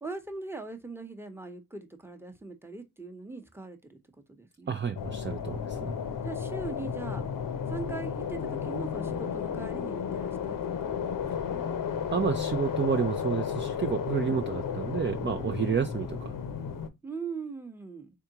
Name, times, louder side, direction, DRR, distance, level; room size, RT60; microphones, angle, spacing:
voice 1, 0.0-4.0 4.4-4.8 5.8-5.9 6.2-7.2 7.7-11.8 14.2-14.4 17.0-18.1, right 4 dB, 5° right, 0.9 m, -41 dB
voice 2, 4.7-5.9 12.1-16.3, right 7 dB, 30° right, 0.5 m, -30 dB
sound 1, 4.9-16.9, left 7 dB, 60° left, 0.7 m, -33 dB
3.6 x 3.5 x 2.8 m
cardioid pair, 60°, 37 cm